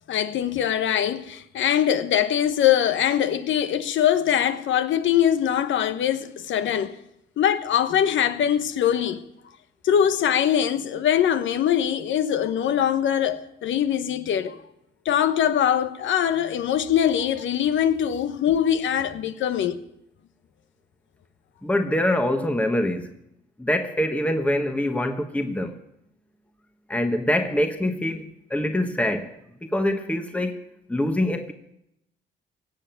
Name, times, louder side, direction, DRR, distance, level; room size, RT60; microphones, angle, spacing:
voice 1, 0.1-7.0 7.4-9.2 9.8-14.6 15.0-19.8, left 9 dB, 75° left, 1.1 m, -22 dB
voice 2, 21.6-23.1 23.6-25.7 26.9-29.3 29.7-30.6 30.9-31.5, left 1 dB, 5° left, 1.2 m, -24 dB
17.5 x 7.7 x 9.0 m
cardioid pair, 90°, 20 cm